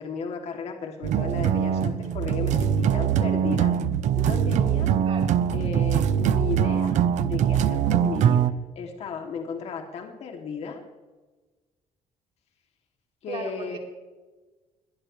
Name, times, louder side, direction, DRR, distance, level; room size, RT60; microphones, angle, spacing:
voice 1, 0.0-3.7 4.1-4.9 5.5-8.5 8.7-10.8 13.2-13.8, left 5 dB, 55° left, 2 dB, 2.8 m, -34 dB
sound 1, 1.0-8.5, right 9 dB, 65° right, 0.8 m, -22 dB
voice 2, 5.0-5.4 13.3-13.8, right 5 dB, 45° right, 1 dB, 4.1 m, -36 dB
22.0 x 18.5 x 3.3 m, 1.2 s
cardioid pair, 150°, 13 cm